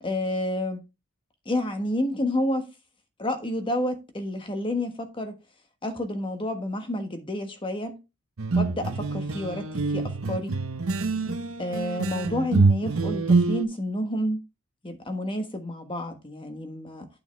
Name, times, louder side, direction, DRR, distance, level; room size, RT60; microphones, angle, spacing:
voice 1, 0.0-0.8 1.4-2.7 3.2-5.4 5.8-8.0 8.5-10.6 11.6-14.4 14.8-17.1, left 1 dB, 25° left, 1.3 m, -29 dB
sound 1, 8.4-13.6, right 3 dB, 65° right, 0.8 m, -25 dB
8.5 x 6.8 x 3.3 m
head